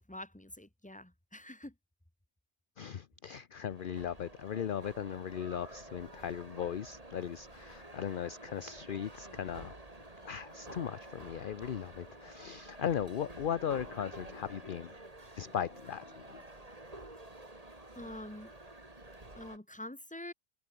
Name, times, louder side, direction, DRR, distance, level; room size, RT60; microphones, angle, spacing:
voice 1, 0.0-1.7 18.0-18.5 19.4-20.3, left 1 dB, 5° left, 1.8 m, -46 dB
voice 2, 2.8-9.7 10.2-14.9 15.4-16.4, left 8 dB, 50° left, 0.8 m, -38 dB
sound 1, 3.7-19.6, right 2 dB, 30° right, 3.3 m, -50 dB
omnidirectional pair, 1.3 m